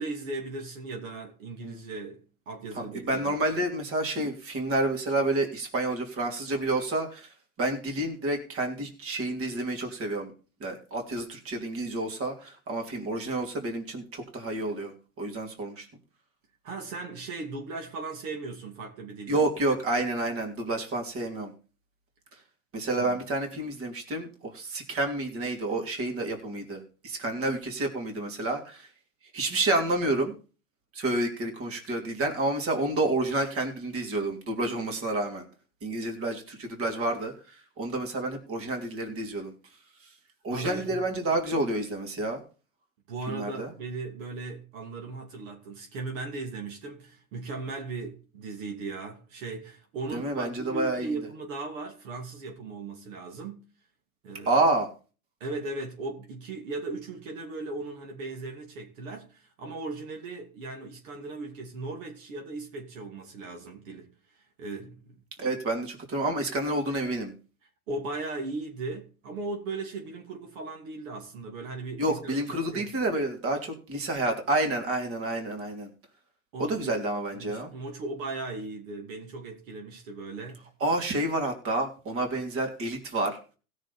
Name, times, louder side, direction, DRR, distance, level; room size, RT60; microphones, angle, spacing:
voice 1, 0.0-3.4 16.6-19.4 23.0-23.2 40.5-41.0 43.1-53.6 54.2-54.6 55.4-64.1 64.3-65.5 67.9-72.9 76.5-76.9 77.3-80.7, right 3 dB, 65° right, 2.9 m, -37 dB
voice 2, 2.7-10.3 10.6-15.9 19.3-21.5 22.7-28.9 29.3-30.3 30.9-35.4 35.8-39.5 40.0-40.1 40.4-42.4 43.3-43.7 50.1-51.1 54.5-54.9 65.4-67.3 72.0-75.9 76.6-77.7 80.8-83.4, right 2 dB, 30° right, 3.1 m, -29 dB
16.5 x 6.6 x 4.3 m
hypercardioid pair, 110°, 43 cm